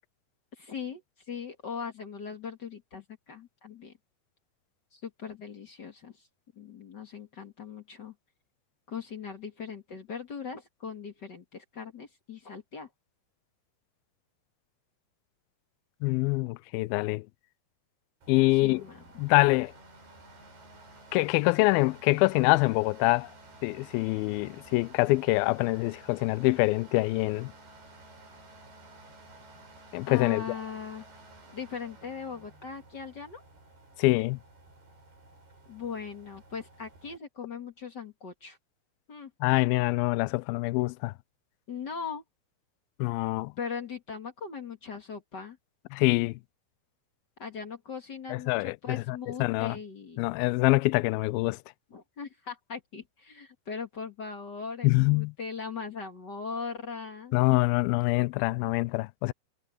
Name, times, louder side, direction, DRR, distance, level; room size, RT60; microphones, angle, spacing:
voice 1, 0.6-1.0 1.3-3.9 4.9-6.3 6.5-8.1 8.9-12.9 18.5-19.0 30.1-31.0 31.5-33.4 35.7-38.6 39.1-39.3 41.7-42.2 43.6-45.6 47.4-50.2 51.9-57.4, left 6 dB, 40° left, 1.8 m, -39 dB
voice 2, 16.0-17.3 18.3-18.8 19.2-19.7 21.1-23.3 23.6-27.5 29.9-30.4 34.0-34.4 39.4-41.1 43.0-43.5 45.9-46.4 48.3-49.8 50.2-51.6 54.8-55.3 57.3-59.3, left 23 dB, 85° left, 2.3 m, -25 dB
sound 1, 18.2-37.2, right 2 dB, 85° right, 10.0 m, -53 dB
omnidirectional pair, 4.4 m